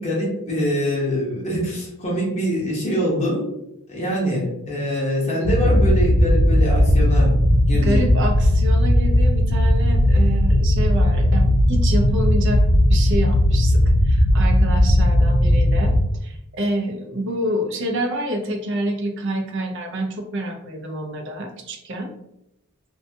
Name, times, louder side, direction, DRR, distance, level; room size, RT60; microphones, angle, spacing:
voice 1, 0.0-3.5 3.9-7.3 7.7-8.1, equal, 30° left, -4 dB, 0.7 m, -24 dB
sound 1, 5.4-16.1, left 1 dB, 75° left, 0.4 m, -17 dB
voice 2, 7.8-12.6 12.9-15.9 16.2-22.1, right 1 dB, 55° right, 2 dB, 0.5 m, -27 dB
2.6 x 2.2 x 2.6 m, 0.83 s
head